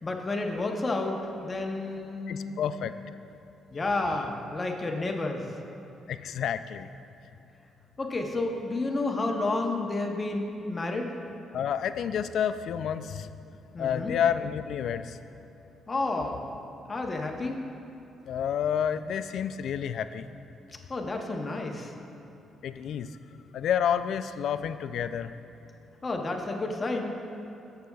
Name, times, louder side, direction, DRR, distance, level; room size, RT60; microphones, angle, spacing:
voice 1, 0.0-2.6 3.7-5.5 8.0-11.1 13.7-14.1 15.9-16.4 16.9-17.6 20.9-21.9 26.0-27.2, left 2 dB, 30° left, 2 dB, 0.9 m, -30 dB
voice 2, 2.3-2.9 6.1-6.9 11.5-13.3 13.8-15.2 18.3-20.3 22.6-23.1 23.5-25.3, left 8 dB, 70° left, 11 dB, 0.3 m, -29 dB
15.0 x 6.8 x 2.3 m, 3.0 s
cardioid pair, 90°, 0 cm